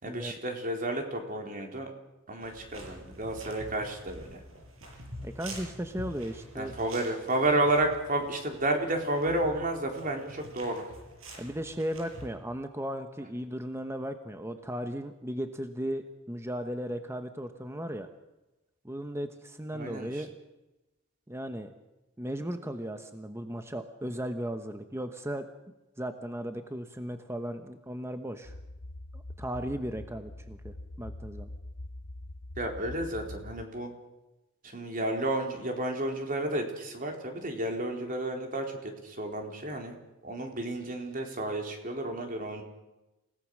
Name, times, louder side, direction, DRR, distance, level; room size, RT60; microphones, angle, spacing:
voice 1, 0.0-1.9 2.3-4.4 6.5-10.8 19.7-20.2 32.6-33.9 34.7-39.9 40.2-42.6, right 1 dB, 40° right, 3 dB, 3.9 m, -31 dB
sound 1, 2.4-12.3, right 1 dB, 75° right, 7.1 m, -47 dB
voice 2, 5.2-6.7 11.4-18.1 18.8-20.3 21.3-21.7 22.2-25.5 26.0-28.5 29.1-31.5, equal, 15° right, 7 dB, 1.1 m, -36 dB
sound 2, 28.4-33.6, left 1 dB, 85° left, 1.1 m, -43 dB
28.0 x 17.5 x 6.5 m, 1.0 s
head